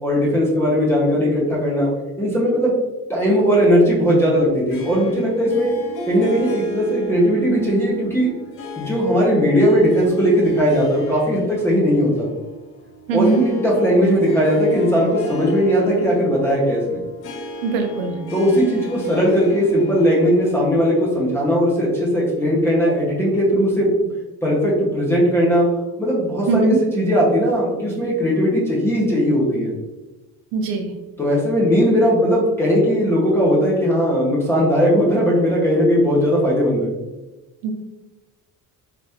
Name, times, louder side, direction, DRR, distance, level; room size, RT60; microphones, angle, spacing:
voice 1, 0.0-1.9 2.2-2.7 3.1-5.7 6.1-8.3 8.8-12.3 13.1-17.0 18.3-23.9 24.4-25.7 26.0-29.7 31.2-36.9, equal, 5° left, -5 dB, 0.6 m, -18 dB
Harp, 4.7-21.5, left 1 dB, 85° left, 0.8 m, -36 dB
voice 2, 13.1-13.5 17.6-18.2 26.5-26.8 30.5-30.9 37.6-37.7, right 4 dB, 80° right, 4 dB, 0.6 m, -20 dB
3.3 x 2.4 x 2.7 m, 1.1 s
cardioid pair, 175°, 35 cm